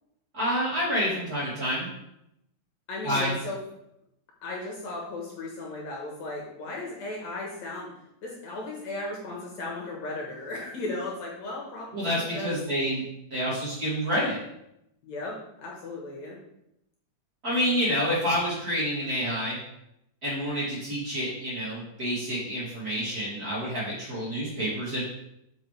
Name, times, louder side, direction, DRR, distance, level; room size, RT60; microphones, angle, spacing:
voice 1, 0.3-1.9 3.0-3.4 11.9-13.0 13.3-14.4 17.4-19.6 20.2-25.0, equal, 30° right, -8 dB, 2.8 m, -28 dB
voice 2, 2.9-3.6 4.4-7.9 8.2-12.6 15.0-16.4, left 2 dB, 65° left, -2 dB, 2.4 m, -36 dB
8.0 x 5.5 x 3.3 m, 0.82 s
omnidirectional pair, 3.7 m